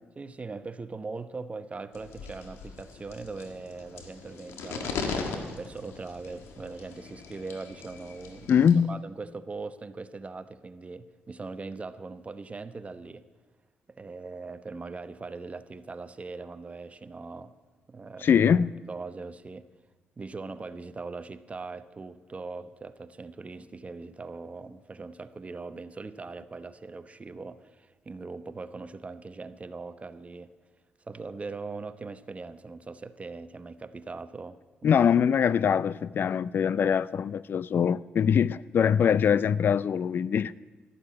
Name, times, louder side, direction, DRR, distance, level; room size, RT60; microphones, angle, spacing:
voice 1, 0.2-8.6 8.9-13.2 13.9-17.5 17.9-18.5 18.9-19.7 20.2-30.5 31.0-35.0 35.3-35.4, right 3 dB, 30° right, 0.9 m, -40 dB
sound 1, 1.9-8.7, left 5 dB, 85° left, 1.7 m, -39 dB
voice 2, 8.5-9.0 18.2-18.8 34.8-40.5, left 7 dB, 55° left, 0.4 m, -23 dB
12.0 x 12.0 x 8.5 m
supercardioid pair, 65°, 4 cm